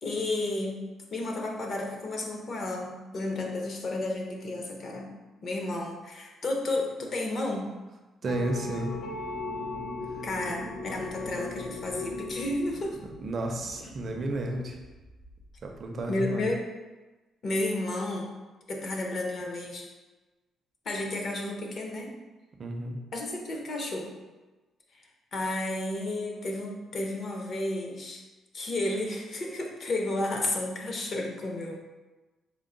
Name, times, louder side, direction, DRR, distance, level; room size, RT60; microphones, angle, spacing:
voice 1, 0.0-5.1 5.4-7.7 10.2-13.0 13.8-14.0 16.1-16.6 17.4-18.3 18.7-19.9 20.9-22.1 23.1-24.1 25.3-28.2 28.5-31.8, left 2 dB, 40° left, 1 dB, 0.6 m, -32 dB
sound 1, 8.2-15.8, left 2 dB, 65° left, 1.3 m, -38 dB
voice 2, 8.2-8.9 13.2-14.8 15.6-16.5 22.6-23.0, right 1 dB, 40° right, 3 dB, 0.4 m, -32 dB
4.4 x 2.0 x 3.8 m, 1.2 s
cardioid pair, 160°, 0 cm